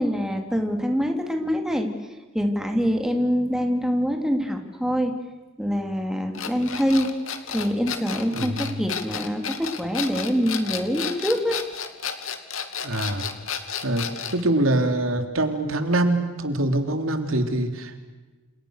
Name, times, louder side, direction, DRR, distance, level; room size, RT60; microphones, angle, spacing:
voice 1, 0.0-1.9 2.3-5.1 5.6-7.1 7.5-11.6, equal, 5° right, 3 dB, 3.2 m, -25 dB
sound 1, 6.3-14.4, left 7 dB, 80° left, 2.6 m, -32 dB
voice 2, 8.3-8.8 12.8-13.3 13.8-14.0 14.3-18.1, right 1 dB, 80° right, 6 dB, 3.4 m, -24 dB
29.0 x 28.5 x 6.6 m, 1.2 s
head